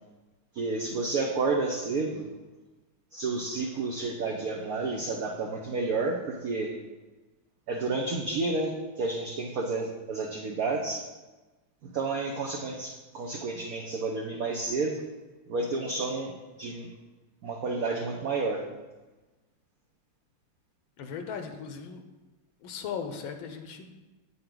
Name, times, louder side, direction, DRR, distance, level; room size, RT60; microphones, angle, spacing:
voice 1, 0.5-2.3 3.1-6.7 7.7-11.0 11.8-15.0 15.5-16.3 16.6-16.9 17.4-18.6, right 3 dB, 60° right, 0 dB, 1.1 m, -30 dB
voice 2, 21.0-22.0 22.6-23.9, left 6 dB, 75° left, 7 dB, 1.6 m, -37 dB
8.7 x 7.9 x 3.9 m, 1.2 s
omnidirectional pair, 2.3 m